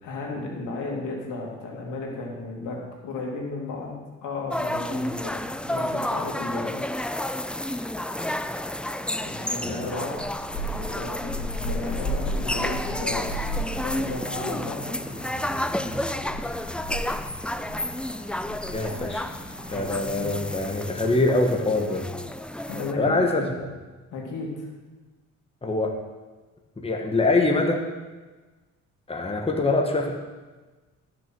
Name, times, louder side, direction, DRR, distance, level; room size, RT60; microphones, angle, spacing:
voice 1, 0.0-2.8 3.0-3.9 4.2-6.7 9.2-10.4 10.6-15.4 19.7-20.3 22.7-23.6 24.1-24.7, left 3 dB, 85° left, -1 dB, 2.9 m, -34 dB
sound 1, 4.5-22.9, left 1 dB, 5° left, 0.5 m, -31 dB
sound 2, 10.1-20.8, equal, 40° left, 4.5 m, -35 dB
voice 2, 18.7-19.3 19.7-22.1 23.0-23.5 25.6-25.9 26.8-27.8 29.1-30.1, left 2 dB, 20° left, 2 dB, 1.5 m, -24 dB
13.5 x 6.4 x 6.2 m, 1.3 s
cardioid pair, 90°, 30 cm